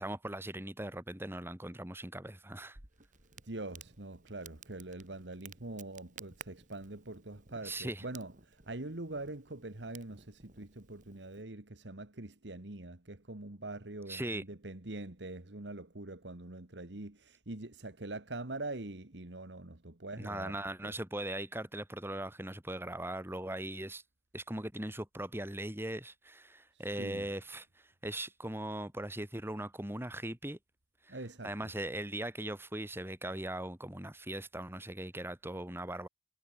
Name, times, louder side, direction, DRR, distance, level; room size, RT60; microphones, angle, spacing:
voice 1, 0.0-2.8 7.6-8.0 14.1-14.4 20.2-24.0 24.3-30.6 31.0-31.2 31.4-36.1, right 1 dB, 15° right, 2.9 m, -39 dB
Crackle, 2.7-11.4, right 6 dB, 45° right, 3.1 m, -56 dB
voice 2, 3.4-20.6 20.8-20.9 26.7-27.3 31.1-31.5, right 2 dB, 70° right, 1.9 m, -44 dB
head